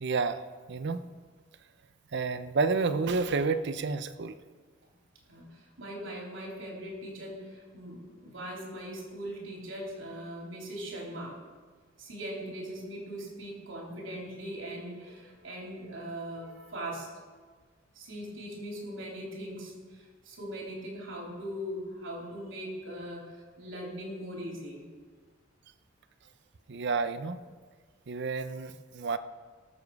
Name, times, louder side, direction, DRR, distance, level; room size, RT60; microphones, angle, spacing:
voice 1, 0.0-0.4 0.7-1.0 2.1-4.4 26.7-27.4 28.1-29.2, right 4 dB, 60° right, 12 dB, 0.6 m, -30 dB
voice 2, 5.3-11.4 12.0-17.1 18.0-24.9, equal, 80° right, -2 dB, 3.5 m, -40 dB
20.5 x 7.1 x 4.8 m, 1.5 s
head